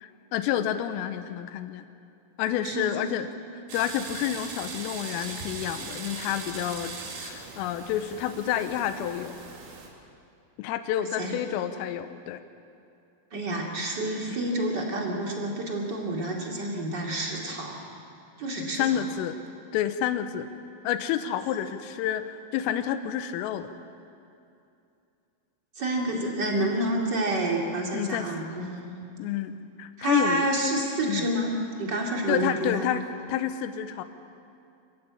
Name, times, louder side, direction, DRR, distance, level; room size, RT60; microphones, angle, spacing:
voice 1, 0.0-1.9 2.4-3.3 3.7-9.4 10.6-12.4 18.8-19.4 19.7-20.5 20.9-23.7 27.9-28.3 29.2-30.5 31.1-31.3 32.3-33.0 33.3-34.0, left 10 dB, 85° left, 10 dB, 3.4 m, -29 dB
voice 2, 2.6-3.0 11.0-11.3 13.3-17.8 18.4-19.0 25.7-28.9 30.0-31.5 31.8-32.9, right 1 dB, 40° right, -1 dB, 1.5 m, -29 dB
sound 1, 3.7-9.9, right 4 dB, 75° right, 4.9 m, -40 dB
27.0 x 15.0 x 8.6 m, 2.6 s
omnidirectional pair, 6.0 m